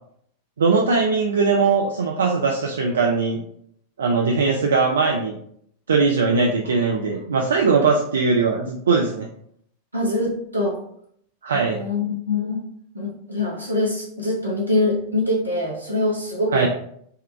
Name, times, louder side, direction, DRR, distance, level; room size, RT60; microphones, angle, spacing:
voice 1, 0.6-3.4 4.0-5.4 5.9-9.3 11.4-11.8 16.5-16.7, right 4 dB, 70° right, 1 dB, 0.3 m, -20 dB
voice 2, 9.9-10.8 11.5-12.6 12.9-16.7, left 2 dB, 85° right, -3 dB, 0.9 m, -24 dB
3.6 x 2.2 x 3.3 m, 0.68 s
figure-of-eight pair, 90°, 0 cm